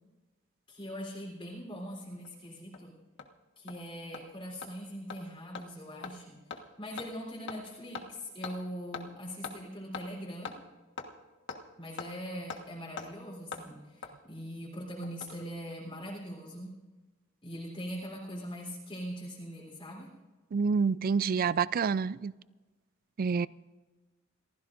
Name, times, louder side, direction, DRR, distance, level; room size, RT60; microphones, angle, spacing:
voice 1, 0.7-3.0 3.6-10.6 11.8-16.7 17.4-20.1, equal, 25° left, 3.6 m, -42 dB
Hammer, 2.2-2.3 2.7-2.8 3.2-3.3 3.7-3.8 4.1-4.2 4.6-4.7 5.1-5.2 5.5-5.6 6.0-6.1 6.5-6.6 7.0-7.1 7.5-7.6 7.9-8.0 8.4-8.5 8.9-9.0 9.4-9.5 9.9-10.0 10.4-10.6 11.0-11.1 11.5-11.6 12.0-12.1 12.5-12.6 13.0-13.1 13.5-13.6 14.0-14.1 15.0-15.4 15.7-15.8, left 5 dB, 60° left, 1.4 m, -40 dB
voice 2, 20.5-22.3 23.2-23.5, right 5 dB, 45° right, 0.4 m, -27 dB
28.5 x 15.0 x 2.6 m
head